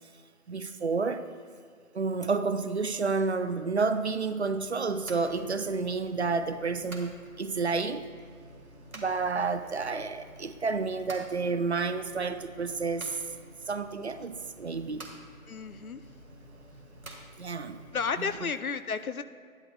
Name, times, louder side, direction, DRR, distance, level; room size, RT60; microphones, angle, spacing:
voice 1, 0.5-1.3 1.9-8.1 8.9-13.2 13.7-15.1 17.4-17.8 18.2-18.5, right 4 dB, 55° right, 0.5 m, -30 dB
sound 1, 4.6-18.1, right 1 dB, 85° right, 1.7 m, -50 dB
voice 2, 9.4-9.8 15.5-16.0 17.9-19.2, left 5 dB, 85° left, 0.7 m, -33 dB
13.5 x 10.5 x 2.2 m
figure-of-eight pair, 150°, 42 cm